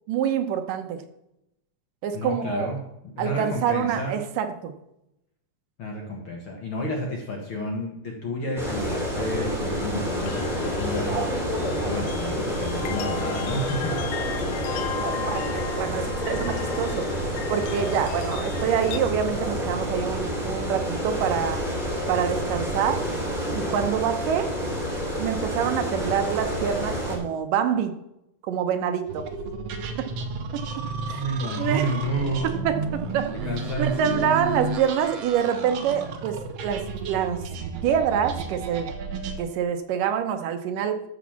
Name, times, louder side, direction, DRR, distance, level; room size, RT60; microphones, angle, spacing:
voice 1, 0.1-1.0 2.0-2.7 3.2-4.7 15.0-17.1 17.5-21.6 22.1-23.1 23.6-24.5 25.2-27.9 28.5-29.3 30.0-30.1 31.1-31.2 31.6-31.9 32.6-33.3 33.8-37.5 37.8-38.9 39.4-41.0, right 8 dB, 80° right, 7 dB, 2.6 m, -26 dB
voice 2, 2.1-4.2 5.8-11.2 11.6-14.0 31.1-32.7 33.4-34.3, equal, 50° left, 0 dB, 2.0 m, -30 dB
sound 1, 8.6-27.2, equal, ahead, 2.9 m, -28 dB
sound 2, 10.2-19.0, left 9 dB, 85° left, 2.4 m, -37 dB
sound 3, 29.1-39.4, right 4 dB, 65° right, 1.8 m, -33 dB
13.5 x 5.2 x 7.2 m, 0.86 s
omnidirectional pair, 3.8 m